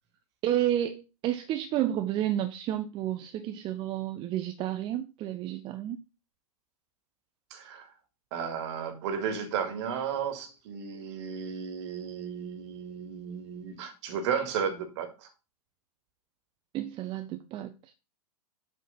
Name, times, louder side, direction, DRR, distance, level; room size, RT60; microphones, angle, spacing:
voice 1, 0.4-6.0 16.7-17.9, right 12 dB, 25° right, 0.6 m, -31 dB
voice 2, 7.5-7.9 8.3-15.3, right 7 dB, 45° right, 2.3 m, -34 dB
8.3 x 4.2 x 5.6 m
figure-of-eight pair, 105°, 20 cm